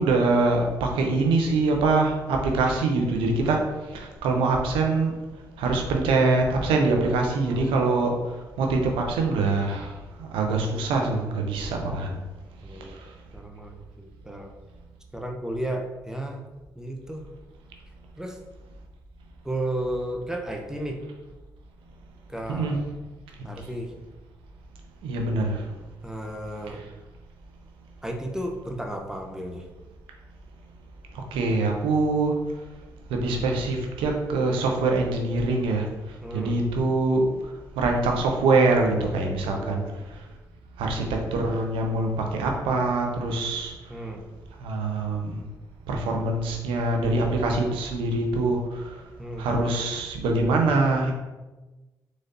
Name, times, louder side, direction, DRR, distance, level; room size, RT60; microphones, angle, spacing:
voice 1, 0.0-3.6 3.9-5.1 5.6-8.1 8.6-9.9 10.2-12.1 22.5-22.8 25.0-25.6 31.1-32.3 33.1-35.9 36.3-37.3 37.8-39.8 40.8-43.7 44.6-45.4 45.9-48.9 49.4-51.1, right 3 dB, 80° right, 2 dB, 0.6 m, -24 dB
voice 2, 7.4-7.8 12.6-13.0 13.3-14.5 15.1-16.5 16.8-17.2 18.2-18.4 19.4-21.0 22.3-22.8 23.4-23.9 26.0-26.8 28.0-29.6 36.2-36.6 39.4-40.1 43.9-44.2 49.2-49.5, right 1 dB, 5° right, 2 dB, 0.7 m, -33 dB
3.8 x 3.2 x 2.6 m, 1.1 s
hypercardioid pair, 45°, 9 cm